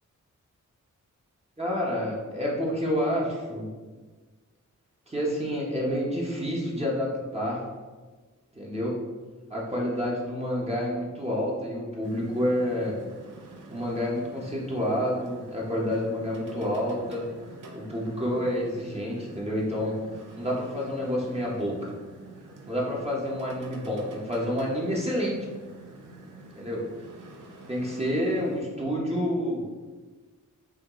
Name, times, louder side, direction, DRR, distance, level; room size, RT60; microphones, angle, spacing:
voice 1, 1.6-3.7 5.1-7.7 8.5-9.0 9.5-12.9 13.7-17.3 17.7-20.0 20.4-21.9 22.7-25.5 26.5-26.8 27.7-29.6, equal, 20° right, -5 dB, 0.9 m, -29 dB
sound 1, 12.0-28.6, right 2 dB, 80° right, 0.6 m, -47 dB
5.7 x 2.1 x 3.0 m, 1.3 s
wide cardioid pair, 80°, 31 cm